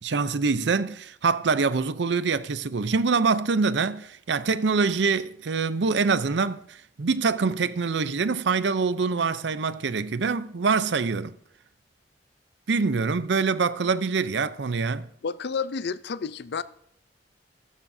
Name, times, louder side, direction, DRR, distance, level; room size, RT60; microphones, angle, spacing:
voice 1, 0.0-11.3 12.7-15.1, right 4 dB, 70° right, 0.6 m, -25 dB
voice 2, 15.2-16.6, left 5 dB, 65° left, 0.5 m, -30 dB
15.0 x 13.0 x 2.7 m
head